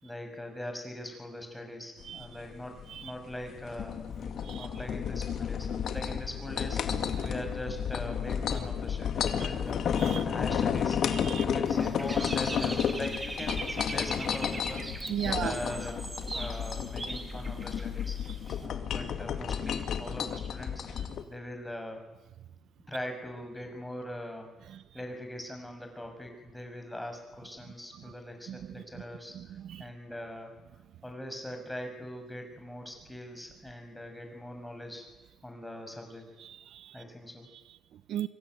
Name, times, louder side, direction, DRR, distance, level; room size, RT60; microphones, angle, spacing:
voice 1, 0.0-6.8 7.2-9.9 10.2-11.0 11.4-14.8 15.2-18.2 18.6-22.0 22.9-24.5 24.9-30.5 31.0-35.0 35.4-36.2 36.9-37.5, left 1 dB, 5° left, 4 dB, 6.3 m, -41 dB
sound 1, 2.0-21.2, left 8 dB, 60° left, 2.1 m, -32 dB
voice 2, 9.9-10.2 11.1-11.4 15.1-15.5 21.0-21.1 24.7-24.8 27.9-28.1 28.5-29.0 29.3-29.9 36.4-37.0 37.5-38.3, right 10 dB, 70° right, 14 dB, 0.9 m, -38 dB
Dog / Bird, 11.7-18.7, right 3 dB, 20° right, 3.0 m, -40 dB
25.0 x 23.0 x 9.3 m, 1.1 s
cardioid pair, 125°, 0 cm